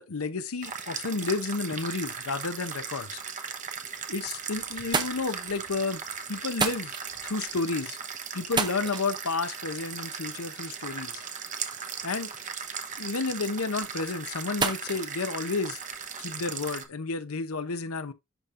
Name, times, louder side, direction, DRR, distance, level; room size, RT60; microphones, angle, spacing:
voice 1, 0.0-3.2 4.1-6.0 6.3-6.9 7.2-8.0 8.3-11.2 12.0-12.3 13.0-15.8 16.2-18.1, left 4 dB, 80° left, 0.8 m, -31 dB
sound 1, 0.6-16.8, right 6 dB, 35° right, 1.0 m, -38 dB
sound 2, 3.9-4.4 4.7-16.3, right 4 dB, 20° right, 0.7 m, -37 dB
11.0 x 3.7 x 2.6 m
head